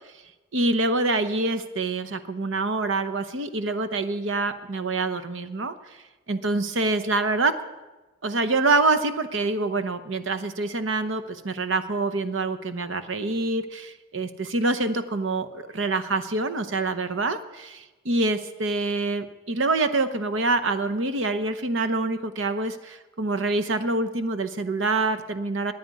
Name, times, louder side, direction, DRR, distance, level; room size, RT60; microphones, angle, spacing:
voice 1, 0.5-5.7 6.3-7.5 8.2-25.7, right 3 dB, 70° right, 11 dB, 0.9 m, -26 dB
9.5 x 9.3 x 9.6 m, 1.1 s
head